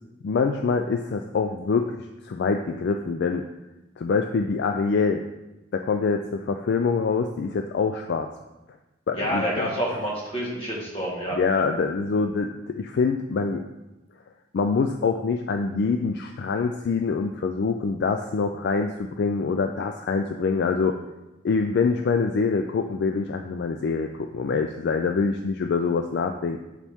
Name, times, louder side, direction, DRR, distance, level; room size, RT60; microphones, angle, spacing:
voice 1, 0.2-1.9 2.2-3.4 4.0-5.2 5.7-8.3 9.1-9.7 11.3-13.6 14.5-21.0 21.4-26.6, left 4 dB, 55° left, 5 dB, 0.3 m, -25 dB
voice 2, 9.1-11.6, equal, 25° left, -3 dB, 1.4 m, -28 dB
7.3 x 4.1 x 3.5 m, 1.0 s
head